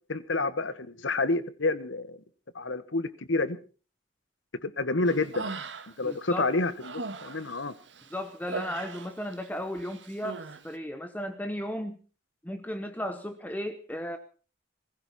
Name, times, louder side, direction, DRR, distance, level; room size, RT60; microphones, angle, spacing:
voice 1, 0.1-2.2 2.5-3.6 4.6-5.5 6.0-7.7, left 3 dB, 90° left, 1.3 m, -29 dB
Human voice, 5.1-6.1 6.5-9.5 9.7-10.6, right 3 dB, 75° right, 1.6 m, -39 dB
voice 2, 6.0-6.5 8.1-12.0 12.4-14.2, equal, 10° left, 0.9 m, -35 dB
21.0 x 15.0 x 4.2 m
head